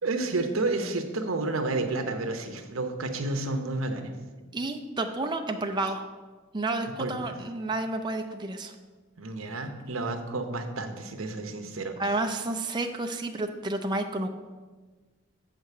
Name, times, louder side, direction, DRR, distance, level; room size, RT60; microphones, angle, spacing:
voice 1, 0.0-4.1 7.0-7.3 9.2-11.9, right 2 dB, 85° right, 6 dB, 0.9 m, -30 dB
voice 2, 4.5-6.0 6.5-8.7 12.0-14.3, right 2 dB, 20° right, 4 dB, 0.4 m, -30 dB
7.4 x 4.7 x 6.8 m, 1.4 s
head